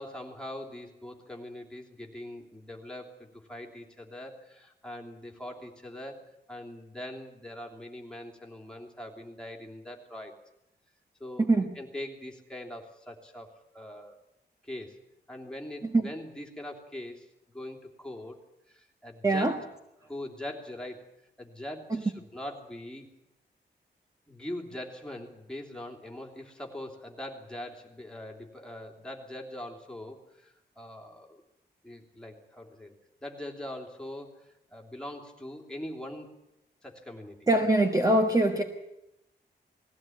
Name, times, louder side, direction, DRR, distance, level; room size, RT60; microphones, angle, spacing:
voice 1, 0.0-10.4 11.2-11.5 11.7-14.2 14.6-15.0 15.3-17.3 17.5-18.4 18.7-19.5 20.1-21.1 21.4-23.1 24.3-31.4 31.8-36.3 36.8-37.4, left 1 dB, 5° left, 3.2 m, -42 dB
voice 2, 11.4-11.7 15.8-16.1 19.2-19.5 21.9-22.0 37.5-38.6, right 2 dB, 20° right, 1.5 m, -23 dB
20.0 x 16.0 x 9.4 m
wide cardioid pair, 135°, 18 cm